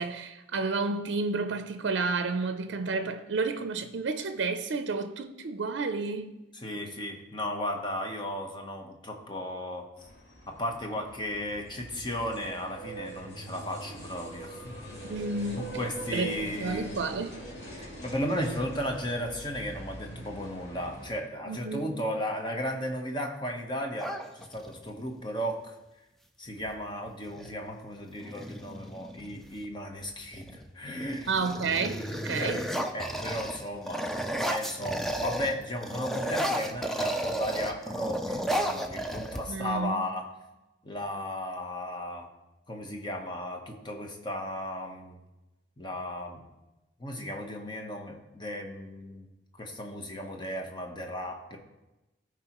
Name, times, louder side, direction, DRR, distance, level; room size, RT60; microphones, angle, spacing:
voice 1, 0.0-6.4 15.0-15.8 16.1-16.3 16.6-17.4 21.5-22.0 31.3-32.6 39.5-40.0, right 4 dB, 75° right, 0.5 m, -31 dB
voice 2, 6.6-9.9 10.5-14.8 15.6-17.0 17.7-25.7 26.4-31.3 32.4-32.6 32.9-34.1 34.5-40.3 40.8-42.3 42.7-45.2 45.8-46.5 47.0-49.3 49.6-51.6, equal, 25° left, 0.9 m, -35 dB
sound 1, 10.0-21.2, right 1 dB, 75° left, 2.6 m, -43 dB
sound 2, 24.0-24.9 26.6-26.7 27.1-27.6 28.1-29.6 30.3-30.7 31.0-35.6 35.8-39.8, equal, ahead, 0.4 m, -33 dB
14.0 x 4.8 x 3.0 m
head